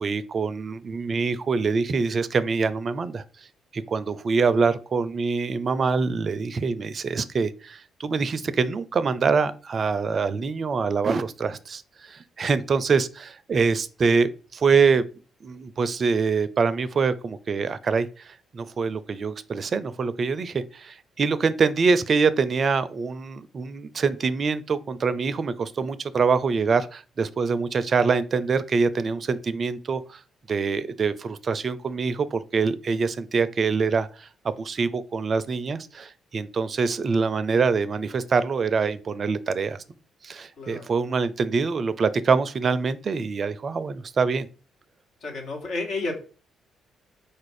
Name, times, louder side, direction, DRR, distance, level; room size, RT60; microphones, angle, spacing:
voice 1, 0.0-3.2 3.7-15.0 15.4-30.2 30.5-39.8 40.2-44.5, right 5 dB, 50° right, 0.4 m, -25 dB
voice 2, 45.2-46.2, left 3 dB, 65° left, 1.4 m, -31 dB
4.2 x 2.5 x 4.7 m
hypercardioid pair, 50°, 0 cm